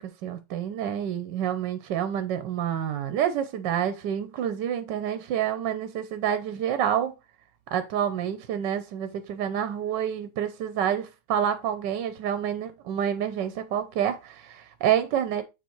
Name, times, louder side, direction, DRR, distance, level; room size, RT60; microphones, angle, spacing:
voice 1, 0.0-7.1 7.7-15.4, right 9 dB, 85° right, 1.4 m, -28 dB
7.0 x 4.6 x 4.5 m
omnidirectional pair, 1.9 m